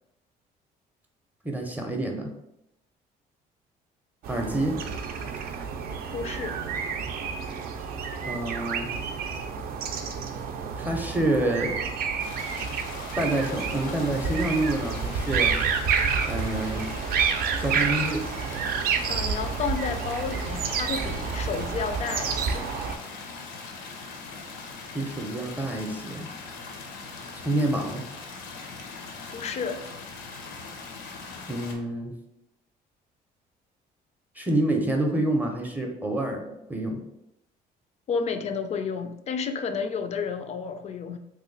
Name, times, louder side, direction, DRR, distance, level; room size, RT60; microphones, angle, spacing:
voice 1, 1.4-2.3 4.3-4.8 8.2-8.9 10.8-11.7 13.2-15.6 16.3-16.9 17.6-18.3 24.9-26.3 27.3-28.0 31.5-32.1 34.4-37.0, right 1 dB, 10° right, 0.5 m, -27 dB
sound 1, 4.2-23.0, right 6 dB, 60° right, 0.4 m, -29 dB
voice 2, 6.1-6.6 19.1-22.7 29.3-29.8 38.1-41.2, left 5 dB, 40° left, 0.4 m, -31 dB
sound 2, 12.2-31.7, left 4 dB, 90° left, 0.6 m, -41 dB
3.0 x 2.2 x 3.8 m
cardioid pair, 110°, 17 cm